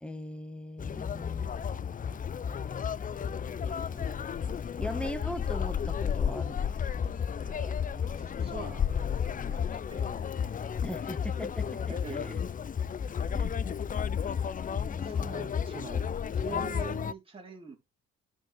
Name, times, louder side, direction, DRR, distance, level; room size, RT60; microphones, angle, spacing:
voice 1, 0.0-1.5 3.9-4.5 4.8-7.2 10.8-12.4 13.3-13.6 14.9-15.6 16.5-16.9, left 1 dB, 5° left, 1.6 m, -41 dB
Conversation, 0.8-17.1, left 7 dB, 30° left, 0.4 m, -32 dB
voice 2, 0.9-1.3 7.0-10.3 11.9-12.3 13.2-13.4 15.0-16.1 16.3-17.8, right 5 dB, 20° right, 4.2 m, -46 dB
11.0 x 6.7 x 3.5 m
cardioid pair, 90°, 30 cm